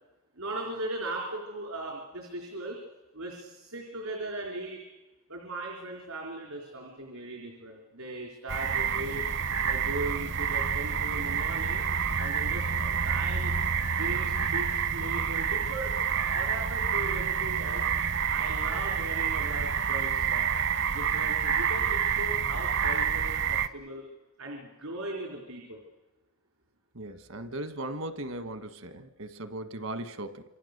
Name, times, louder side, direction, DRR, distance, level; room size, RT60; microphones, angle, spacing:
voice 1, 0.4-2.8 3.1-4.8 5.3-9.3 9.6-11.8 12.2-13.5 13.9-17.9 18.3-20.5 20.9-24.1 24.4-25.8, right 1 dB, 90° right, 0 dB, 4.1 m, -38 dB
sound 1, 8.5-23.7, right 7 dB, 55° right, 0.8 m, -28 dB
voice 2, 26.9-30.4, right 1 dB, 75° right, 10 dB, 1.4 m, -38 dB
27.0 x 25.5 x 6.7 m, 1.1 s
head